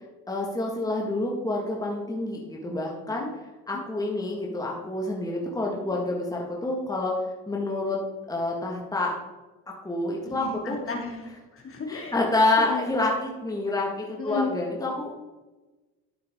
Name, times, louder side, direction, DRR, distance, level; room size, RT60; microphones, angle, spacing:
voice 1, 0.3-3.3 3.7-8.0 8.3-9.1 9.8-10.8 11.9-15.2, left 2 dB, 10° left, -2 dB, 1.8 m, -28 dB
voice 2, 10.3-12.2 12.7-12.9 14.2-14.5, left 4 dB, 40° left, 2 dB, 2.6 m, -34 dB
12.5 x 6.3 x 3.7 m, 1.2 s
cardioid pair, 100°, 35 cm